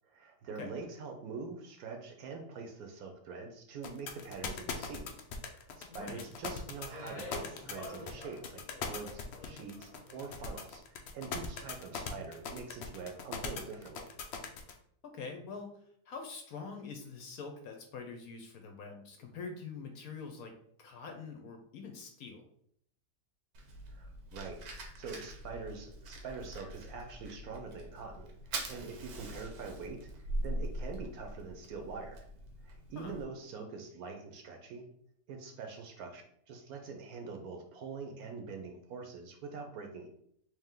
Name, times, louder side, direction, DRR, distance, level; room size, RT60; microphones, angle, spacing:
voice 1, 0.0-5.1 5.5-14.1 23.9-30.1 30.4-32.3 32.6-34.9 35.3-40.1, right 4 dB, 70° right, 3 dB, 1.0 m, -44 dB
sound 1, 3.8-14.7, left 6 dB, 90° left, 0.5 m, -40 dB
voice 2, 5.8-6.3 15.0-15.8 16.1-22.5 32.9-33.1, left 5 dB, 70° left, 4 dB, 0.9 m, -45 dB
Speech, 6.2-10.6, left 1 dB, 30° left, 0.8 m, -49 dB
Fire, 23.5-33.2, right 1 dB, 85° right, 1.4 m, -42 dB
3.4 x 2.9 x 3.6 m, 0.67 s
omnidirectional pair, 1.8 m